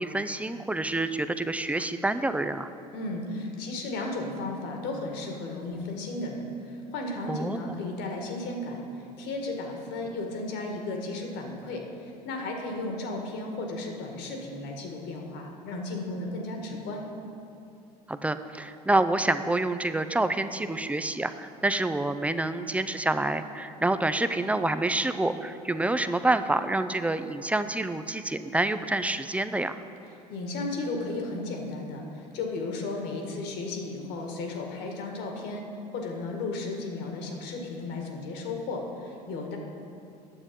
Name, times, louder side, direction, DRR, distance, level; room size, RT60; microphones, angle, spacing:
voice 1, 0.0-2.7 7.3-7.6 18.1-29.8, right 2 dB, 5° right, 10 dB, 0.4 m, -27 dB
voice 2, 2.9-8.8 9.2-17.0 30.3-35.6 35.9-39.6, left 2 dB, 55° left, 2 dB, 1.6 m, -34 dB
9.9 x 7.2 x 5.2 m, 2.6 s
hypercardioid pair, 70°, 21 cm